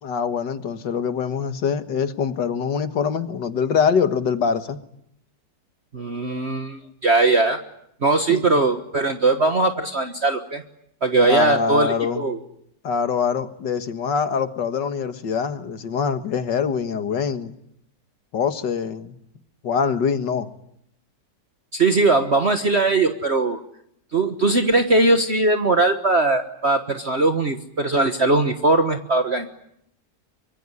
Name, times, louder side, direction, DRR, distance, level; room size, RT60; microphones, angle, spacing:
voice 1, 0.0-4.8 8.3-8.4 11.2-12.2 12.8-17.5 18.3-19.2 19.6-20.5, left 6 dB, 75° left, 9 dB, 2.2 m, -24 dB
voice 2, 5.9-7.6 8.0-10.6 11.0-12.4 21.7-23.6 24.1-29.5, right 3 dB, 40° right, 6 dB, 1.5 m, -20 dB
25.0 x 24.0 x 9.9 m, 0.75 s
omnidirectional pair, 1.9 m